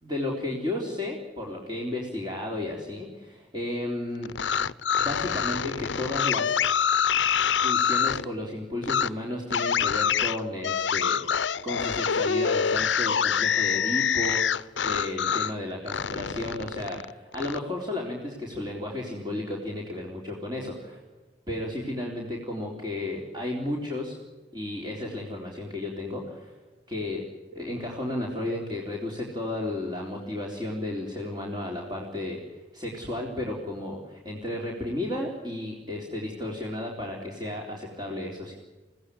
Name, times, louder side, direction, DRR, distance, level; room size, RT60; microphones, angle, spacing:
voice 1, 0.0-4.3 5.0-6.8 7.6-11.2 11.6-21.0 21.5-24.2 24.5-26.5 26.9-27.2 27.5-32.4 32.7-38.5, left 1 dB, 25° right, -1 dB, 3.8 m, -33 dB
sound 1, 4.2-8.2 8.8-9.1 9.5-15.5 15.9-17.6, left 7 dB, 90° left, 0.7 m, -25 dB
Trumpet, 11.8-14.1, left 2 dB, 5° right, 2.6 m, -46 dB
24.0 x 17.0 x 9.9 m, 1.2 s
head